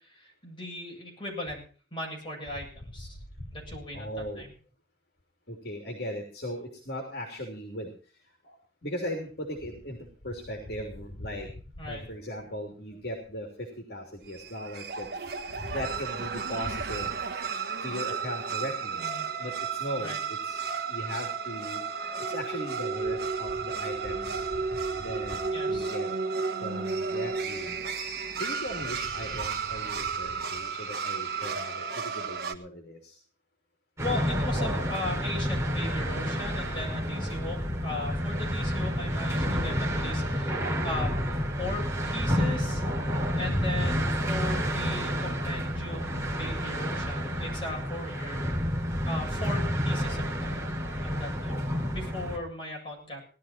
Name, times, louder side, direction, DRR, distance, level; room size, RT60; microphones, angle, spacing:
voice 1, 0.0-1.6 1.9-3.1 3.5-4.1 4.4-4.5 11.8-12.0 19.0-19.4 20.0-20.2 25.5-25.9 34.0-41.2 41.6-48.4 49.1-50.6 51.0-51.6 51.9-53.2, left 1 dB, 25° left, 0 dB, 7.8 m, -38 dB
voice 2, 3.9-4.4 5.5-7.9 8.8-10.0 10.2-11.5 11.8-13.5 13.9-15.1 15.7-17.1 17.8-19.0 19.4-21.8 22.3-24.4 25.0-25.4 25.7-26.1 26.6-27.8 28.4-33.1, equal, 60° left, 2 dB, 3.2 m, -38 dB
sound 1, 14.3-32.5, right 5 dB, 55° right, 1.5 m, -33 dB
sound 2, 34.0-52.4, equal, 15° right, 3.0 m, -29 dB
18.5 x 12.5 x 4.4 m, 0.40 s
head